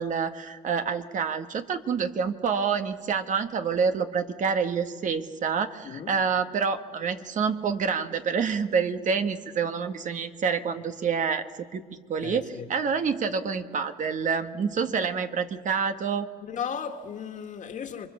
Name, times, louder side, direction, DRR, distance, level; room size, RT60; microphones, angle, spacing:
voice 1, 0.0-11.5 11.7-11.8 12.1-16.3, right 6 dB, 50° right, 1.4 m, -27 dB
voice 2, 5.8-6.1 12.2-12.7 16.5-18.1, left 7 dB, 50° left, 2.1 m, -35 dB
28.0 x 23.5 x 7.2 m
cardioid pair, 110°, 17 cm